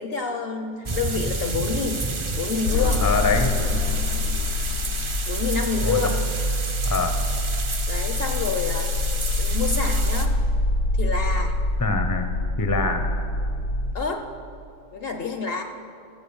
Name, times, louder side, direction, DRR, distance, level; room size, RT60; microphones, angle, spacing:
voice 1, 0.0-2.0 2.4-3.0 5.3-6.2 7.9-8.9 9.3-10.3 11.0-11.5 13.9-14.2 14.9-15.6, left 5 dB, 50° left, 6 dB, 0.8 m, -28 dB
sound 1, 0.9-10.3, right 3 dB, 35° right, 0.5 m, -30 dB
sound 2, 2.7-13.9, left 2 dB, 80° left, 1.1 m, -25 dB
voice 2, 3.0-3.5 5.8-6.0 6.8-7.1 11.8-12.3 12.6-13.0, left 3 dB, 20° left, 6 dB, 0.5 m, -23 dB
13.5 x 8.0 x 7.0 m, 2.5 s
omnidirectional pair, 1.5 m